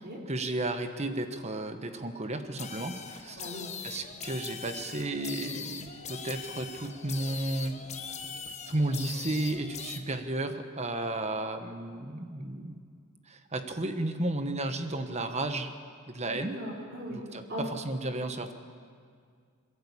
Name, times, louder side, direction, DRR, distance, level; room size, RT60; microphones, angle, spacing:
voice 1, 0.3-3.5 3.8-7.8 8.7-12.8 13.3-15.7 16.1-16.6 17.3-18.5, right 2 dB, 30° right, 8 dB, 1.2 m, -33 dB
sound 1, 2.6-10.0, left 6 dB, 30° left, 1.2 m, -41 dB
voice 2, 3.4-3.7 16.3-17.2 17.5-17.7, right 1 dB, 50° right, -3 dB, 4.5 m, -38 dB
26.5 x 11.5 x 8.5 m, 2.1 s
head